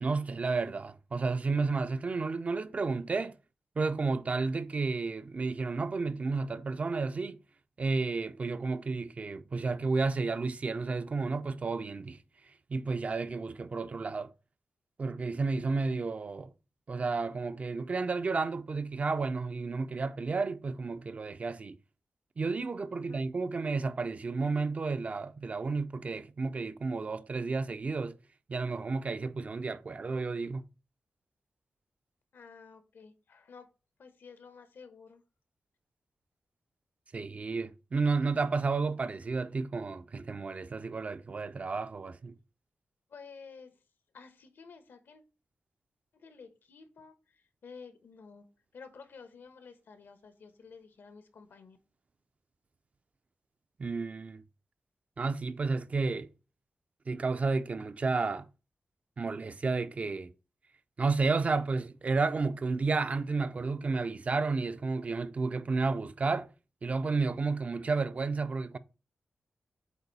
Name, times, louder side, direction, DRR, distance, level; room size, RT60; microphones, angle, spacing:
voice 1, 0.0-3.4 3.8-7.4 7.8-12.2 12.7-14.3 15.0-16.5 16.9-21.8 22.4-28.2 28.5-30.7 37.1-42.3 53.8-54.4 55.2-56.3 57.1-58.5 59.2-60.3 61.0-66.5 66.8-68.8, right 4 dB, 40° right, 0.5 m, -31 dB
voice 2, 22.9-23.2 32.3-33.7 34.0-35.2 43.1-43.8 44.1-45.2 46.1-48.5 48.7-51.8, left 5 dB, 80° left, 1.1 m, -52 dB
7.9 x 2.6 x 5.4 m
wide cardioid pair, 120°, 4 cm